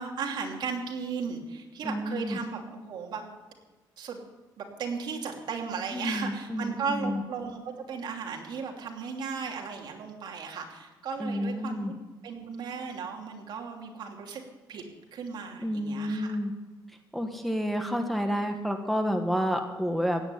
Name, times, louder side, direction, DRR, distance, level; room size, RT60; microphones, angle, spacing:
voice 1, 0.0-3.3 4.0-4.2 4.6-11.9 12.2-14.4 14.7-14.8 15.1-16.4, right 5 dB, 60° right, 2 dB, 2.9 m, -36 dB
voice 2, 1.8-2.4 5.9-7.2 11.2-11.9 15.6-16.5 17.1-20.2, equal, ahead, 3 dB, 1.2 m, -30 dB
16.5 x 9.0 x 9.8 m, 1.2 s
cardioid pair, 170°, 8 cm